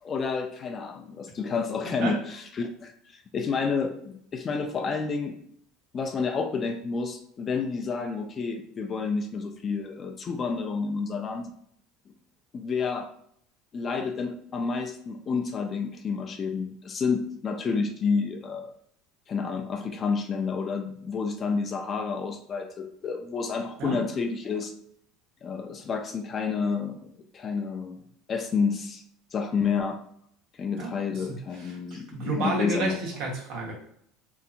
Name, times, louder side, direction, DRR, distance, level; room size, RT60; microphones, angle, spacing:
voice 1, 0.0-5.4 5.9-11.5 12.5-13.1 13.7-18.7 19.3-24.7 25.4-28.0 28.3-29.0 29.3-30.0 30.6-33.0, left 5 dB, 30° left, 5 dB, 0.4 m, -30 dB
voice 2, 30.8-31.8 32.1-33.7, right 3 dB, 65° right, -2 dB, 1.0 m, -31 dB
2.8 x 2.5 x 2.4 m, 0.66 s
supercardioid pair, 120°, 0 cm